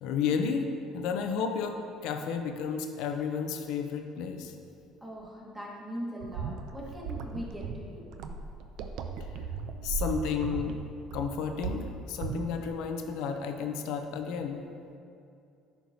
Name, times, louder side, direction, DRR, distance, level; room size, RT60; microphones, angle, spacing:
voice 1, 0.0-4.5 9.8-10.8 11.1-14.6, left 6 dB, 75° left, 5 dB, 0.6 m, -32 dB
voice 2, 5.0-8.1, equal, 10° right, -4 dB, 1.5 m, -40 dB
sound 1, 6.2-12.7, right 5 dB, 70° right, 0.4 m, -37 dB
10.5 x 4.6 x 2.8 m, 2.5 s
cardioid pair, 115°, 0 cm